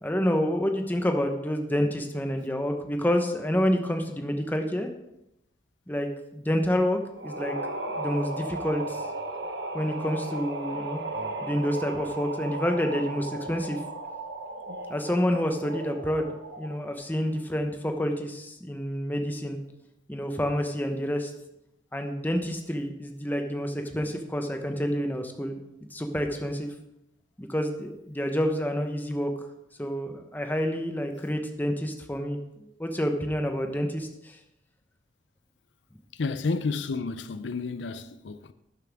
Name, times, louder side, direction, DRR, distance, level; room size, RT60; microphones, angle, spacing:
voice 1, 0.0-4.9 5.9-7.5 8.0-9.0 9.7-11.0 11.4-13.8 14.9-16.3 16.6-19.6 20.1-21.3 21.9-25.5 25.9-26.7 27.4-29.3 29.8-34.4, equal, 10° left, 1.0 m, -28 dB
sound 1, 7.2-16.9, right 2 dB, 70° right, 1.2 m, -36 dB
voice 2, 36.2-38.5, left 4 dB, 80° left, 0.5 m, -31 dB
12.0 x 9.1 x 3.6 m
head